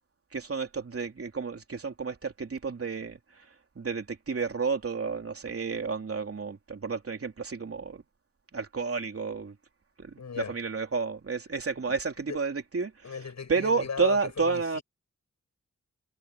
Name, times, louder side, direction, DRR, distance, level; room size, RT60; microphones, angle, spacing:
voice 1, 0.3-3.5 3.7-8.0 8.5-9.6 10.0-13.2 13.5-14.8, right 5 dB, 50° right, 3.1 m, -31 dB
voice 2, 10.2-10.6 11.9-12.0 12.3-12.4 13.0-14.8, left 6 dB, 70° left, 7.9 m, -37 dB
wide cardioid pair, 80°, 29 cm